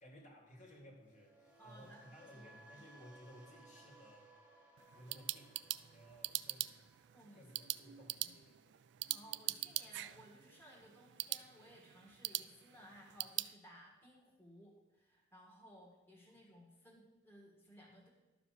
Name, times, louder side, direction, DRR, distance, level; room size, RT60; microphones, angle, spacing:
voice 1, 0.0-4.3 4.9-7.0 7.3-8.8 16.3-16.4, equal, 40° left, 0 dB, 2.0 m, -59 dB
sound 1, 1.0-9.1 9.4-9.7, right 2 dB, 5° right, 1.4 m, -64 dB
voice 2, 1.6-2.9 7.1-7.5 8.2-8.3 9.1-18.1, equal, 10° left, -4 dB, 1.6 m, -60 dB
sound 2, 4.8-13.5, right 16 dB, 60° right, 0.3 m, -43 dB
12.0 x 5.1 x 6.6 m, 1.1 s
head